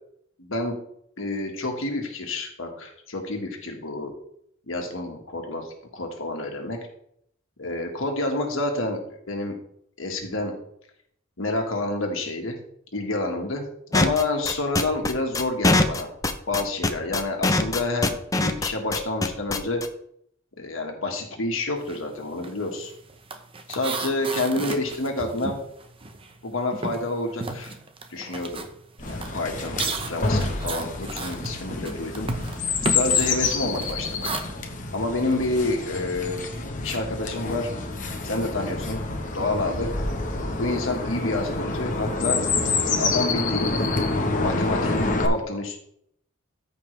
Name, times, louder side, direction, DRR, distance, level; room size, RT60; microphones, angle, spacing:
voice 1, 0.4-0.8 1.2-4.1 4.7-6.8 7.6-9.0 9.3-9.5 10.0-10.5 11.4-12.6 12.9-13.6 13.9-16.1 16.5-19.8 20.6-22.9 23.7-25.6 26.4-27.8 28.1-28.7 29.1-32.3 32.9-34.4 34.9-36.4 36.8-37.7 38.2-39.0 39.3-39.9 40.6-42.4 43.0-43.7 44.4-45.8, left 2 dB, 80° left, 2 dB, 1.6 m, -28 dB
sound 1, 13.9-19.9, left 2 dB, 15° left, 0.6 m, -22 dB
sound 2, 21.8-22.1 22.3-26.4 26.7-34.4, right 3 dB, 25° right, 0.8 m, -34 dB
Chirp tweet, 29.0-45.3, left 3 dB, 40° left, 1.1 m, -27 dB
14.0 x 5.3 x 3.3 m, 0.69 s
head